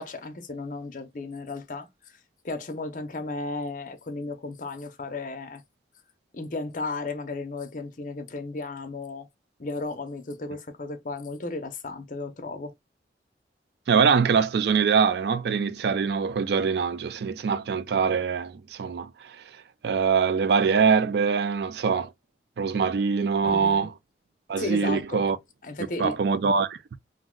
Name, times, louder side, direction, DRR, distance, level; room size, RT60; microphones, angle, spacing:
voice 1, 0.0-1.9 2.4-5.6 6.3-9.3 9.6-12.7 23.4-23.9 24.6-25.2 25.6-26.2, left 3 dB, 45° left, 0.6 m, -34 dB
voice 2, 13.9-19.4 19.8-22.1 22.6-23.9 24.5-25.4 26.0-26.8, right 5 dB, 65° right, 0.3 m, -23 dB
2.6 x 2.1 x 3.7 m
head